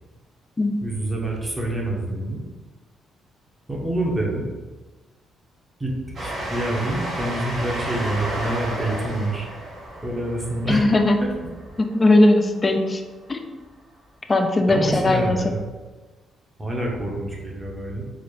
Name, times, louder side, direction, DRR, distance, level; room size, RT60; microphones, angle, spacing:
voice 1, 0.8-2.4 3.7-4.5 5.8-9.5 10.0-11.3 14.7-15.6 16.6-18.0, right 1 dB, 15° right, -2 dB, 0.9 m, -27 dB
Train, 6.1-12.3, right 1 dB, 45° right, 1.0 m, -32 dB
voice 2, 10.7-11.2 11.9-13.0 13.3-13.5 14.3-15.4, left 2 dB, 25° left, 5 dB, 0.4 m, -18 dB
4.0 x 2.4 x 3.2 m, 1.3 s
cardioid pair, 90°, 0 cm